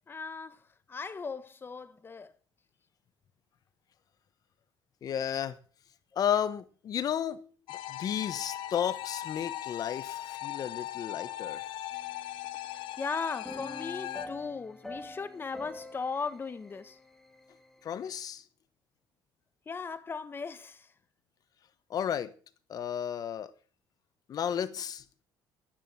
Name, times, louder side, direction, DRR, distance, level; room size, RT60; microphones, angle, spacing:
voice 1, 0.1-0.6 0.9-2.3 12.7-17.0 19.7-20.9, left 5 dB, 25° left, 1.3 m, -37 dB
voice 2, 5.0-5.6 6.2-7.5 7.9-11.7 17.8-18.4 21.9-22.3 22.7-23.5 24.3-25.0, left 9 dB, 50° left, 1.2 m, -33 dB
sound 1, 7.7-14.3, left 14 dB, 75° left, 1.2 m, -39 dB
sound 2, 11.9-13.0 13.5-18.0, left 1 dB, 5° left, 2.3 m, -46 dB
12.5 x 10.0 x 7.5 m
cardioid pair, 115°, 8 cm